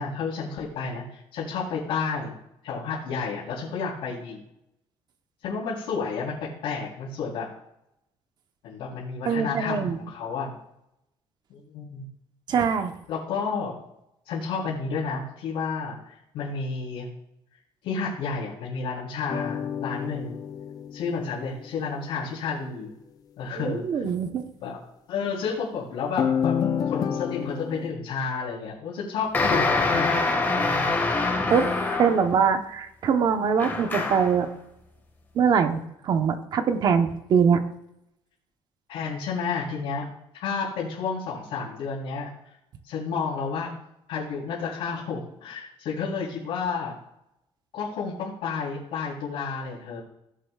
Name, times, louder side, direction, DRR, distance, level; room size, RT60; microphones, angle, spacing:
voice 1, 0.0-2.3 2.6-4.4 5.4-6.4 6.6-7.5 8.6-10.6 11.5-12.0 13.1-13.8 14.3-17.1 17.8-20.3 20.9-22.9 23.4-24.0 24.6-24.8 25.1-26.6 26.9-30.2 30.6-31.1 38.9-40.1 40.4-42.3 42.8-43.7 44.1-47.0 47.7-50.0, left 5 dB, 75° left, -8 dB, 3.6 m, -31 dB
voice 2, 9.2-10.0 12.5-12.9 23.6-24.5 31.5-34.5 35.3-37.6, right 6 dB, 45° right, 8 dB, 0.9 m, -23 dB
sound 1, 19.3-21.9 26.2-27.9, left 8 dB, 40° left, 0.6 m, -29 dB
sound 2, 29.3-32.4 33.6-34.4, left 3 dB, 20° left, 1.7 m, -25 dB
17.0 x 8.0 x 2.4 m, 0.80 s
cardioid pair, 170°, 10 cm